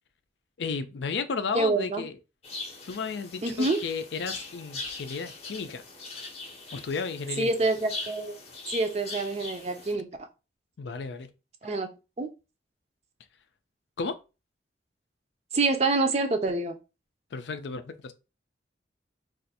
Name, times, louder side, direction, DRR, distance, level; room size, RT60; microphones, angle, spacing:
voice 1, 0.6-2.2 2.9-5.8 6.7-7.5 9.9-10.0 10.8-11.3 14.0-14.2 17.3-18.1, left 5 dB, 75° left, 0.4 m, -33 dB
voice 2, 1.5-2.0 3.4-3.8 7.4-8.3 8.7-10.1 11.6-11.9 12.2-12.3 15.5-16.8, right 3 dB, 35° right, 0.4 m, -26 dB
sound 1, 2.4-9.9, left 3 dB, 35° left, 0.7 m, -40 dB
2.5 x 2.4 x 4.1 m
head